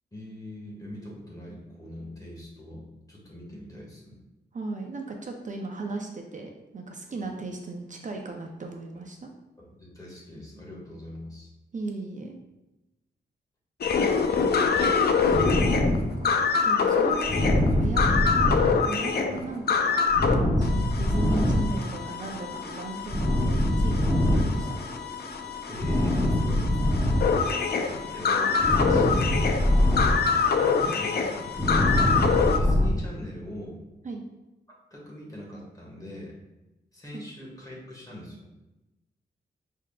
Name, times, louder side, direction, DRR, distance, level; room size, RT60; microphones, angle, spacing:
voice 1, 0.1-4.2 9.6-11.5 19.2-19.5 24.3-24.5 25.7-27.2 27.9-30.2 30.5-31.3 31.7-32.2 32.5-33.8 34.9-36.3 36.9-38.5, left 1 dB, 20° left, -4 dB, 1.3 m, -42 dB
voice 2, 4.5-9.3 11.7-12.4 15.9-20.2 20.6-24.7 34.0-34.2 37.1-37.2, right 3 dB, 45° right, 2 dB, 0.5 m, -37 dB
sound 1, 13.8-20.3 20.6-32.6, left 5 dB, 60° left, 0.4 m, -26 dB
sound 2, 15.3-27.9 28.2-32.9, left 1 dB, ahead, 0.8 m, -25 dB
5.7 x 3.6 x 2.3 m, 1.0 s
wide cardioid pair, 105°, 18 cm